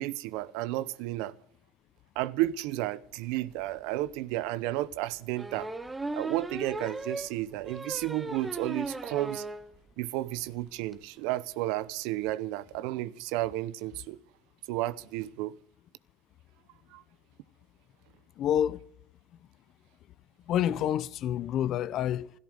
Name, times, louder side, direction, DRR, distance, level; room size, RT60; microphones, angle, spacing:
voice 1, 0.0-1.3 2.2-5.7 6.1-9.5 10.0-14.2 14.7-15.5 16.9-17.0, right 16 dB, 80° right, 0.8 m, -32 dB
sound 1, 4.1-4.2 5.4-9.7 10.0-10.1 10.4-10.5 10.7-10.9, right 2 dB, 15° right, 1.3 m, -37 dB
voice 2, 18.4-18.8 20.5-22.3, left 10 dB, 55° left, 0.8 m, -28 dB
15.0 x 13.5 x 6.4 m
supercardioid pair, 110°, 0 cm